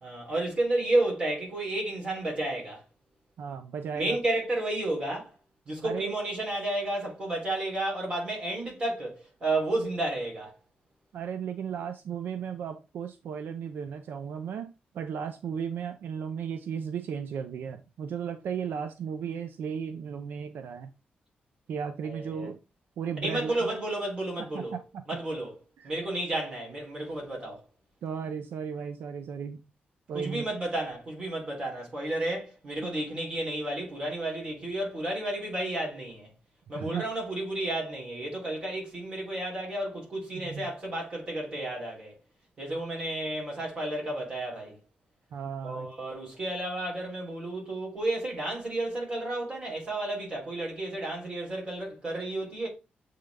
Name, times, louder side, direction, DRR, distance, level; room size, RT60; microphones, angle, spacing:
voice 1, 0.0-2.8 3.9-5.3 5.7-10.6 22.0-22.5 23.2-24.7 25.1-25.5 25.8-27.6 30.1-36.3 36.7-42.1 42.6-44.8 45.6-52.7, right 1 dB, 30° right, 3.1 m, -32 dB
voice 2, 3.4-4.2 5.8-6.2 11.1-20.9 21.7-22.6 23.0-23.7 24.5-25.0 25.8-25.9 28.0-29.6 30.1-30.4 36.7-37.0 40.3-40.7 45.3-45.9, right 7 dB, 75° right, 0.6 m, -35 dB
7.7 x 3.8 x 3.4 m
wide cardioid pair, 175°, 3 cm